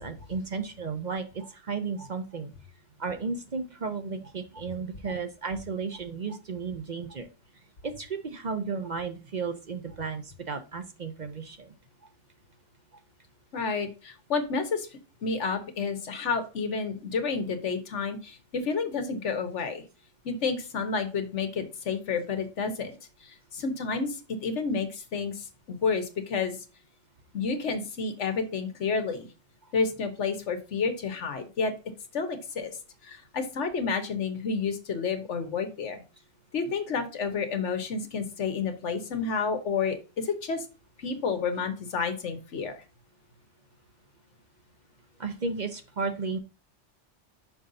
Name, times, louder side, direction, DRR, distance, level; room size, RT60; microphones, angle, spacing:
voice 1, 0.0-2.5 3.0-7.3 7.8-11.7 29.6-29.7 45.2-46.4, right 4 dB, 45° right, 8 dB, 0.7 m, -34 dB
voice 2, 13.5-14.9 15.2-19.8 20.2-22.9 23.2-26.6 27.3-29.3 29.7-31.7 32.1-32.8 33.0-36.0 36.5-40.6 41.0-42.7, left 5 dB, 80° left, 7 dB, 1.3 m, -30 dB
5.7 x 5.5 x 3.8 m, 0.32 s
omnidirectional pair, 1.2 m